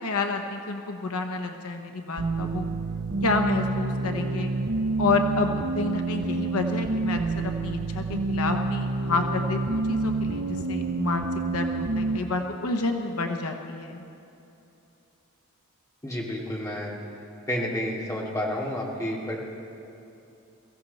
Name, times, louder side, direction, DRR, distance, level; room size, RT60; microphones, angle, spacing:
voice 1, 0.0-2.7 3.2-4.5 5.0-14.0, left 3 dB, 75° left, 4 dB, 0.9 m, -29 dB
sound 1, 2.2-12.2, right 3 dB, 50° right, 0.6 m, -28 dB
voice 2, 16.0-16.9 17.5-19.4, equal, 15° left, -4 dB, 2.4 m, -30 dB
23.0 x 15.0 x 4.1 m, 2.8 s
head